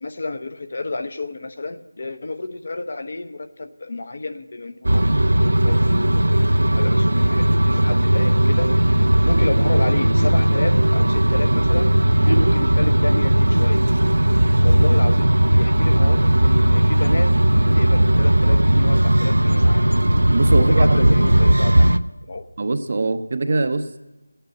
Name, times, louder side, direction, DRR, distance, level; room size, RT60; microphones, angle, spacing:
voice 1, 0.0-8.7 9.2-11.9 12.2-13.8 14.6-19.9 20.5-22.0 22.3-22.5, left 3 dB, 35° left, 8 dB, 0.9 m, -31 dB
sound 1, 4.8-22.0, right 1 dB, 85° right, 0.8 m, -17 dB
voice 2, 20.3-21.0 22.6-24.0, right 3 dB, 35° right, 9 dB, 0.8 m, -22 dB
14.5 x 9.0 x 9.9 m, 1.0 s
figure-of-eight pair, 175°, 0 cm